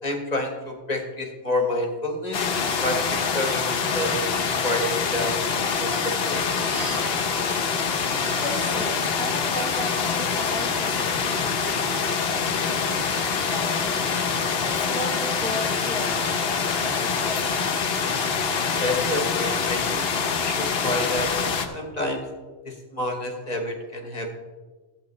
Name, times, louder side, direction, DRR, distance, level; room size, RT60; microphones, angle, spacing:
voice 1, 0.0-2.4 2.8-4.4 4.6-5.4 5.8-6.4 18.8-20.1 20.4-21.3 21.7-22.3 22.6-24.3, left 1 dB, 35° left, 4 dB, 1.2 m, -28 dB
sound 1, 2.3-21.7, left 5 dB, 55° left, 1.0 m, -25 dB
Crying sobbing, 3.5-3.6 3.8-3.9 4.7-7.6 7.8-10.4 11.2-11.3 11.7-11.8, right 4 dB, 50° right, 1.0 m, -42 dB
voice 2, 8.1-13.1 13.5-14.3 14.6-16.2 16.5-17.8, left 1 dB, 5° left, 2 dB, 0.7 m, -36 dB
13.5 x 8.8 x 3.2 m, 1.3 s
omnidirectional pair, 1.2 m